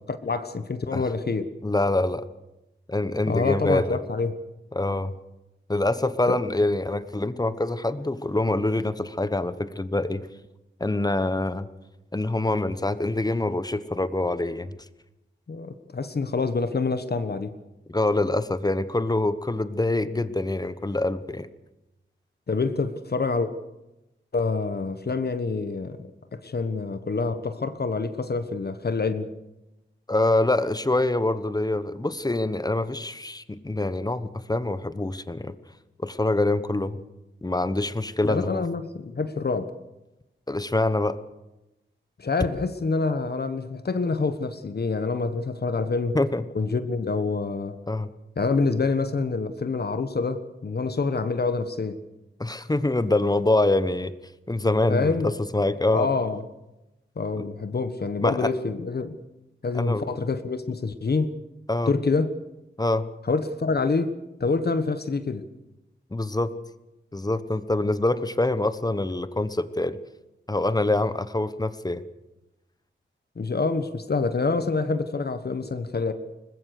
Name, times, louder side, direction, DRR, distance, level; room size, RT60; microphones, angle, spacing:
voice 1, 0.1-1.5 3.3-4.3 6.3-6.4 15.5-17.5 22.5-23.5 24.3-29.3 38.2-39.7 42.2-46.2 46.5-47.8 48.4-52.0 54.9-55.3 55.9-56.4 57.2-59.2 59.6-61.3 61.9-62.3 63.3-64.1 64.4-65.4 73.4-76.1, left 4 dB, 50° left, 10 dB, 1.3 m, -26 dB
voice 2, 1.6-2.2 2.9-4.0 4.7-5.1 5.7-10.3 10.8-11.7 12.1-14.8 17.9-21.5 30.1-35.5 36.0-37.0 37.4-38.6 40.5-41.2 46.1-46.4 47.9-48.1 52.4-54.1 54.5-56.1 57.4-57.5 58.2-58.5 59.7-60.1 61.7-61.9 62.8-63.0 66.1-66.5 67.1-70.0 70.5-72.0, left 2 dB, 20° left, 13 dB, 1.0 m, -25 dB
21.5 x 20.0 x 6.7 m, 0.97 s
wide cardioid pair, 95°, 20 cm